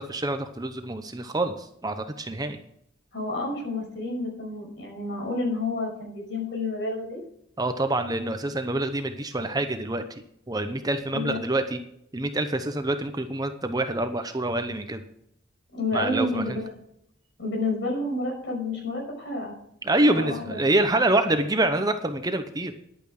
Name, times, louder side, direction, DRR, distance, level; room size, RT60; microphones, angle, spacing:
voice 1, 0.0-2.6 7.6-10.0 10.5-11.8 12.1-15.0 15.9-16.6 19.8-22.8, right 2 dB, 20° right, 8 dB, 0.8 m, -26 dB
voice 2, 3.1-7.2 11.1-11.4 15.7-16.8 17.4-19.6 20.1-20.6, left 2 dB, 65° left, 0 dB, 5.9 m, -30 dB
11.0 x 8.8 x 6.4 m, 0.74 s
head